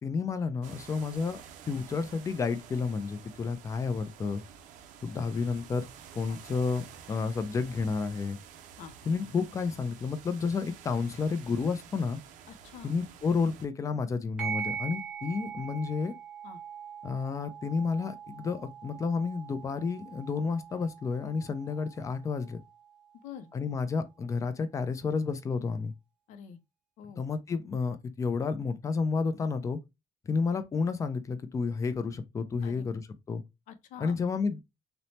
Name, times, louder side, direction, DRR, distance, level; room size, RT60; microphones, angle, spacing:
voice 1, 0.0-4.4 5.0-5.9 6.1-6.8 7.1-8.4 9.1-12.2 12.8-16.1 17.0-22.6 23.5-25.9 27.2-29.8 30.3-33.4 34.0-34.6, left 5 dB, 25° left, 0.4 m, -31 dB
sound 1, 0.6-13.7, right 8 dB, 85° right, 0.4 m, -50 dB
voice 2, 12.5-12.9 16.4-16.6 23.2-23.5 26.3-26.6 27.0-27.2 32.6-32.9 33.7-34.4, left 7 dB, 80° left, 0.5 m, -46 dB
sound 2, 14.4-23.4, right 7 dB, 10° right, 1.1 m, -42 dB
3.1 x 2.0 x 2.7 m
cardioid pair, 135°, 13 cm